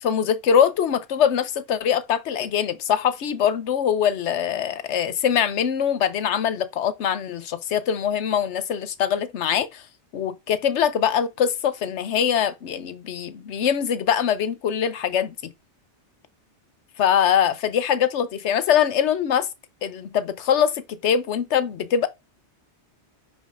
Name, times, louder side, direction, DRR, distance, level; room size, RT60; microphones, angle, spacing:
voice 1, 0.0-9.8 10.1-15.5 17.0-19.5 19.8-22.1, left 8 dB, 75° left, 1.0 m, -23 dB
9.5 x 5.1 x 2.5 m
omnidirectional pair, 1.2 m